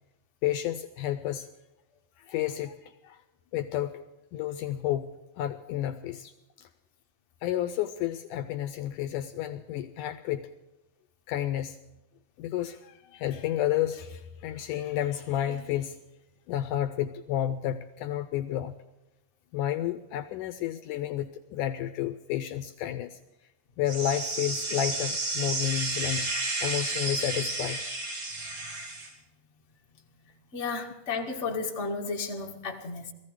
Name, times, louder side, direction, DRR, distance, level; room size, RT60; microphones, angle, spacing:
voice 1, 0.4-1.5 2.2-3.2 3.5-4.0 4.3-6.7 7.4-10.5 11.3-11.8 12.4-16.0 16.5-18.7 19.5-23.2 23.8-26.4 26.6-27.8, left 12 dB, 90° left, 11 dB, 1.8 m, -31 dB
sound 1, 23.9-29.1, right 2 dB, 60° right, 5.1 m, -32 dB
voice 2, 30.5-33.1, left 4 dB, 30° left, 0 dB, 1.3 m, -33 dB
18.5 x 15.0 x 4.9 m, 0.98 s
omnidirectional pair, 4.4 m